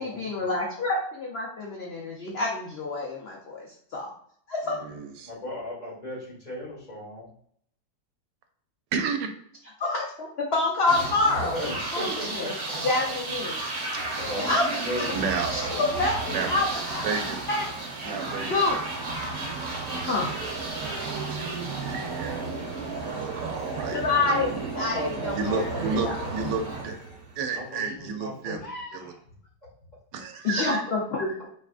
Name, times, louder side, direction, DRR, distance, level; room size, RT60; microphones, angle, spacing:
voice 1, 0.0-4.1 4.5-4.8 9.8-11.6 11.9-12.5 12.8-13.6 14.4-15.1 15.5-17.1 17.5-17.7 18.5-18.8 20.1-20.3 23.9-26.2 30.4-31.5, left 3 dB, 65° left, -2 dB, 0.6 m, -27 dB
voice 2, 4.7-5.3 8.9-9.3 13.9-14.2 15.1-15.5 16.3-16.5 17.0-17.4 18.0-18.6 19.3-20.3 20.8-22.7 23.0-24.0 25.3-26.9 27.4-29.1 30.1-30.8, right 5 dB, 80° right, 6 dB, 1.2 m, -32 dB
voice 3, 5.2-7.3 11.4-12.8 14.2-14.6 14.9-15.2 15.7-15.8 24.4-24.5 24.7-26.3 27.5-29.1, equal, 25° left, -7 dB, 1.7 m, -36 dB
sound 1, 10.9-27.6, right 3 dB, 40° right, 1.4 m, -33 dB
4.5 x 3.5 x 2.4 m, 0.65 s
omnidirectional pair, 1.9 m